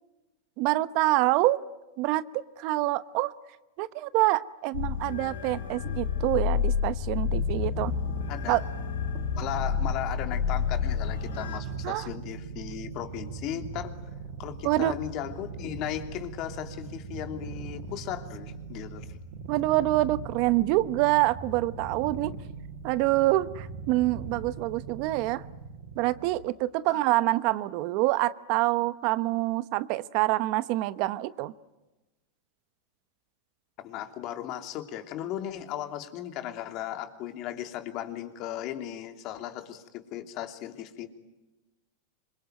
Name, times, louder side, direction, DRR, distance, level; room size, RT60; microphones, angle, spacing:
voice 1, 0.6-1.6 2.0-3.3 3.8-7.9 8.5-8.6 11.8-12.1 14.6-14.9 19.5-22.3 22.8-25.4 26.0-31.5, right 17 dB, 55° right, 15 dB, 1.0 m, -26 dB
sound 1, 4.7-11.6, left 7 dB, 90° left, 4.9 m, -30 dB
Purr, 7.1-26.4, right 5 dB, 70° right, 5.9 m, -40 dB
voice 2, 8.3-8.6 9.3-14.0 14.4-19.2 26.9-27.0 33.8-41.1, left 11 dB, 45° left, 6 dB, 3.1 m, -36 dB
26.5 x 22.5 x 9.4 m, 1.1 s
hypercardioid pair, 125°, 0 cm